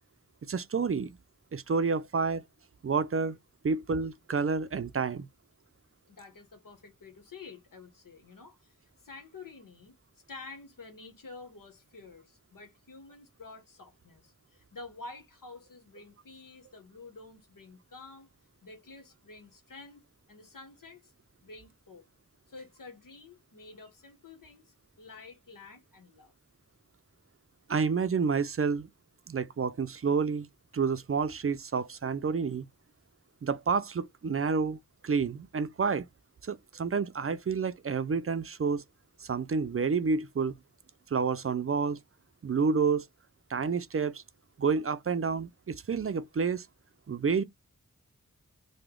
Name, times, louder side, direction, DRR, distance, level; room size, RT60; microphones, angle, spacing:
voice 1, 0.4-1.2 1.5-2.4 2.8-3.4 3.6-5.3 27.7-28.9 29.3-30.5 30.7-32.6 33.4-36.1 36.4-38.8 39.2-40.6 41.1-42.0 42.4-43.1 43.5-44.2 44.6-46.7 47.1-47.4, right 5 dB, 45° right, 0.4 m, -29 dB
voice 2, 6.1-10.0 10.3-18.3 18.6-21.1 21.4-22.0 22.5-26.3, left 3 dB, 85° left, 1.0 m, -49 dB
3.0 x 2.1 x 3.6 m
wide cardioid pair, 45°, 32 cm